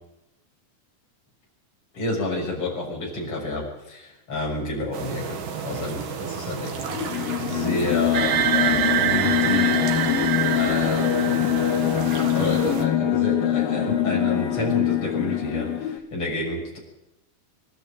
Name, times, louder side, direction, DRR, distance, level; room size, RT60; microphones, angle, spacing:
voice 1, 1.9-5.4 5.6-6.8 7.0-9.8 10.4-16.8, left 2 dB, 35° left, -2 dB, 7.2 m, -30 dB
sound 1, 4.9-12.9, right 6 dB, 65° right, 3.5 m, -33 dB
sound 2, 6.8-16.0, left 11 dB, 75° left, 3.0 m, -24 dB
sound 3, 8.1-11.9, right 12 dB, 90° right, 3.0 m, -25 dB
25.5 x 12.0 x 9.0 m, 0.92 s
omnidirectional pair, 4.4 m